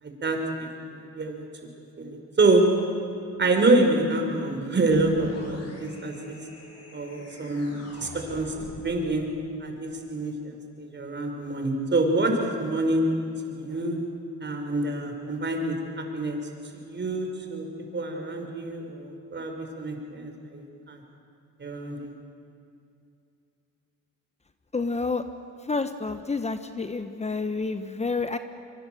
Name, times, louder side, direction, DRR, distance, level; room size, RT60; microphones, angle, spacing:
voice 1, 0.0-1.4 2.0-2.6 3.4-6.4 6.9-9.3 9.6-13.0 13.4-14.0 14.4-16.4 16.7-17.7 17.9-21.0 21.6-22.1, right 2 dB, 35° right, 3 dB, 5.3 m, -27 dB
sound 1, 4.9-9.1, left 2 dB, 55° left, 5.9 m, -45 dB
voice 2, 24.7-25.2 25.6-28.4, left 4 dB, 20° left, 9 dB, 1.1 m, -29 dB
25.0 x 24.5 x 7.9 m, 2.5 s
cardioid pair, 90°, 30 cm